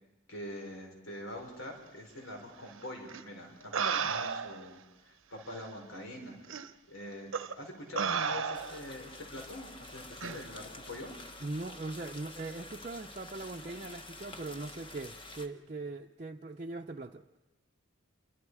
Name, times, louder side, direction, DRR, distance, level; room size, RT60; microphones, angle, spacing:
voice 1, 0.3-6.4 6.9-11.1, left 1 dB, 90° left, 2 dB, 5.0 m, -44 dB
sound 1, 3.1-3.2 3.7-4.7 5.5-5.6 6.5-6.7 7.3-7.5 8.0-8.9 10.2-10.4, right 6 dB, 85° right, 0.9 m, -33 dB
sound 2, 8.5-15.5, left 2 dB, 25° left, 1.3 m, -48 dB
voice 2, 11.4-17.2, right 2 dB, 35° right, 0 dB, 0.7 m, -40 dB
28.5 x 23.0 x 4.8 m, 1.1 s
head